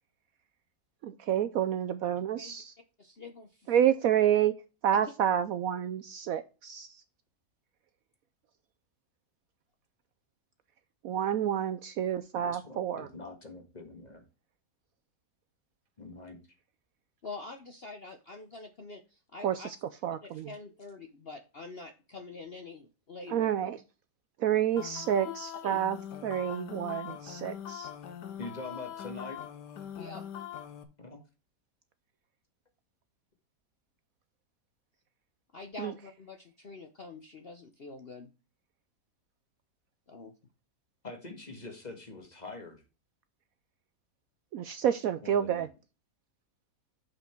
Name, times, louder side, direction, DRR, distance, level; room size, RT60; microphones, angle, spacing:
voice 1, 1.0-2.7 3.7-4.5 4.8-6.9 11.0-13.1 19.4-19.8 20.0-20.5 23.3-23.8 24.4-26.0 26.2-27.9 35.8-35.9 44.5-45.7, right 10 dB, 70° right, 11 dB, 0.9 m, -29 dB
voice 2, 3.0-3.8 4.9-5.1 17.2-19.7 20.2-23.5 25.2-25.3 25.6-25.8 30.0-30.2 35.5-38.3 40.1-40.3, left 4 dB, 45° left, 5 dB, 0.9 m, -45 dB
voice 3, 12.3-14.2 16.0-16.4 28.4-29.4 31.0-31.2 41.0-42.8 45.2-45.7, left 3 dB, 25° left, 4 dB, 1.6 m, -44 dB
sound 1, 24.8-30.8, left 9 dB, 80° left, 1.5 m, -42 dB
6.6 x 5.8 x 4.4 m, 0.31 s
omnidirectional pair, 1.8 m